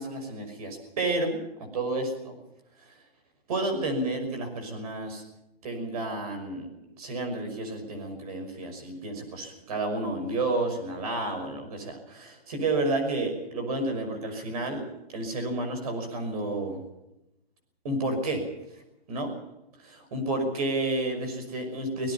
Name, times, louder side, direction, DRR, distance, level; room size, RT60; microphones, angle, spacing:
voice 1, 0.0-2.4 2.9-3.0 3.5-5.2 5.6-6.7 7.0-16.8 17.8-18.5 19.1-19.3 19.8-22.1, right 2 dB, 35° right, 5 dB, 5.8 m, -31 dB
26.0 x 18.5 x 5.8 m, 0.89 s
hypercardioid pair, 170°, 31 cm